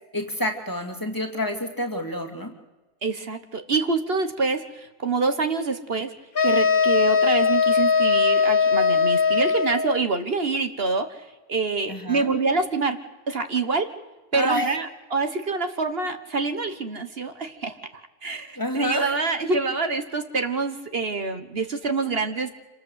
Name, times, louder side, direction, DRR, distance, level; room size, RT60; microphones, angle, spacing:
voice 1, 0.1-2.5 11.9-12.3 14.3-14.7 18.5-19.2, left 1 dB, 20° left, 4 dB, 2.6 m, -28 dB
voice 2, 3.0-6.1 6.4-13.0 13.3-13.9 14.3-22.5, right 4 dB, 60° right, 8 dB, 1.7 m, -26 dB
sound 1, 6.4-10.0, left 5 dB, 55° left, 1.6 m, -20 dB
27.5 x 19.0 x 8.2 m, 1.2 s
omnidirectional pair, 1.1 m